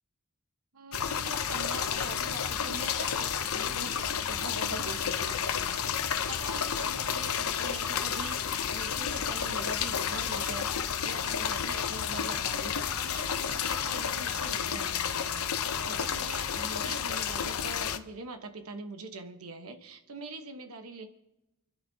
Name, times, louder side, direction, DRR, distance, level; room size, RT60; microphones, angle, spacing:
voice 1, 0.7-21.1, right 2 dB, 75° right, 6 dB, 1.1 m, -43 dB
sound 1, 0.9-18.0, left 8 dB, 70° left, 0.7 m, -31 dB
28.5 x 11.0 x 2.8 m, 0.93 s
head